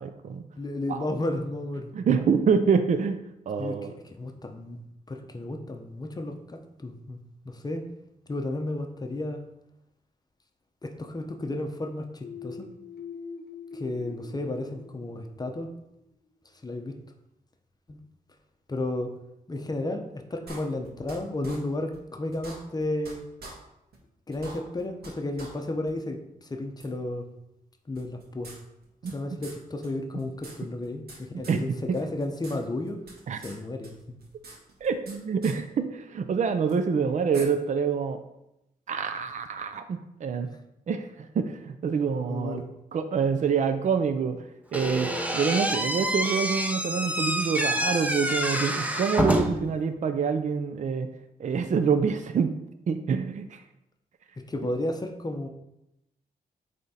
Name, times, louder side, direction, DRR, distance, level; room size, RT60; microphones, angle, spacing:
voice 1, 0.0-0.4 0.9-1.1 1.9-3.9 29.0-29.1 31.3-31.6 31.9-32.0 33.3-33.4 34.8-38.2 38.9-40.5 40.9-42.6 42.9-44.4 44.7-51.1 51.4-52.5 52.9-53.6, right 6 dB, 50° right, 9 dB, 0.5 m, -26 dB
voice 2, 0.6-1.9 3.6-3.8 4.1-4.8 5.1-7.8 8.3-9.4 10.8-12.7 13.7-15.7 16.6-17.0 17.9-18.0 18.7-19.1 19.5-23.2 24.3-27.3 27.9-28.5 29.1-33.0 33.4-34.2 42.3-42.7 54.5-55.5, left 2 dB, 25° left, 5 dB, 0.7 m, -33 dB
sound 1, 12.2-15.9, left 4 dB, 75° left, 0.7 m, -43 dB
sound 2, 20.5-21.2 21.4-21.6 21.9-22.0 22.3-23.1 23.4-23.5 23.9-24.0 24.3-25.1 25.4-25.5 25.9-26.0 26.8-26.9 27.9-29.1 29.4-29.6 29.8-29.9 30.2-31.2 31.4-31.6 31.9-32.6 32.8-33.6 33.8-35.2 35.4-35.6 36.7-36.8 37.3-37.4, right 3 dB, 85° right, 1.6 m, -44 dB
Slam / Squeak, 44.7-49.7, right 1 dB, 10° right, 0.6 m, -27 dB
8.5 x 3.4 x 4.2 m, 0.86 s
wide cardioid pair, 115°, 16 cm